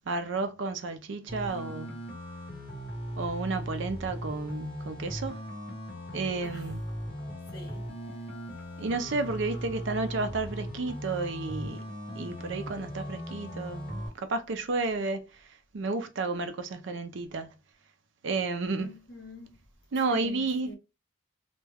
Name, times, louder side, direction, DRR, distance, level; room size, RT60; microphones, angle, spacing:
voice 1, 0.1-2.0 3.2-5.4 6.1-6.8 8.8-11.8 12.2-15.2 15.7-17.5 18.2-18.9 19.9-20.7, right 3 dB, 65° right, 0.4 m, -32 dB
sound 1, 1.3-14.1, equal, 25° left, 1.1 m, -38 dB
voice 2, 7.5-7.8 18.8-19.6 20.1-20.8, left 1 dB, 50° left, 0.9 m, -45 dB
2.2 x 2.1 x 3.3 m
head